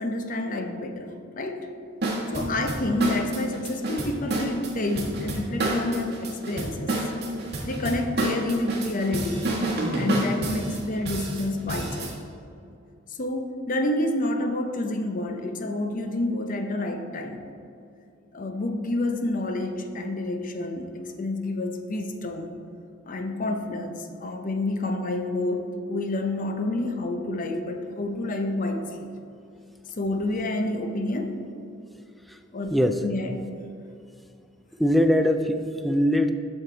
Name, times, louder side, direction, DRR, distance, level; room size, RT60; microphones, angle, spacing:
voice 1, 0.0-1.7 2.3-7.0 7.6-9.5 9.9-12.1 13.1-17.5 18.3-22.5 23.1-29.1 30.0-31.4 32.5-32.8 33.0-33.4, left 2 dB, 45° left, 6 dB, 0.6 m, -29 dB
sound 1, 2.0-12.1, right 1 dB, 55° right, 1.3 m, -29 dB
voice 2, 32.7-33.0 34.8-36.3, equal, ahead, 7 dB, 0.3 m, -22 dB
7.4 x 6.5 x 3.9 m, 2.6 s
head